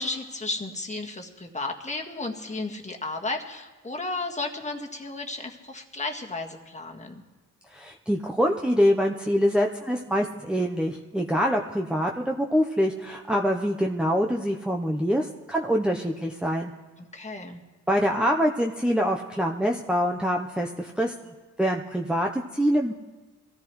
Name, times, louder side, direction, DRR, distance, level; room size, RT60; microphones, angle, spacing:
voice 1, 0.0-7.2 17.0-17.6, left 3 dB, 20° left, 2 dB, 1.7 m, -33 dB
voice 2, 7.7-16.7 17.9-21.1 21.6-22.9, equal, 5° right, 0 dB, 0.8 m, -25 dB
23.0 x 14.0 x 3.2 m, 1.2 s
cardioid pair, 70°, 32 cm